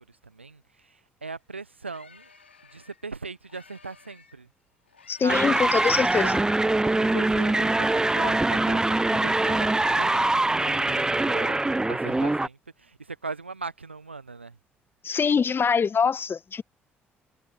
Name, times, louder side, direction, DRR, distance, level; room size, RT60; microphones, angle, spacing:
voice 1, 0.1-2.3 2.6-4.5 5.2-5.4 6.1-6.4 6.9-11.6 11.9-14.6, right 4 dB, 85° right, 1.1 m, -40 dB
sound 1, 1.3-1.4 1.6-4.4 4.9-8.7 9.1-12.4, left 5 dB, 85° left, 3.8 m, -55 dB
voice 2, 5.1-6.4 15.0-16.6, left 6 dB, 40° left, 1.6 m, -24 dB
sound 2, 5.3-12.5, right 2 dB, 10° right, 0.3 m, -23 dB
figure-of-eight pair, 45°, 6 cm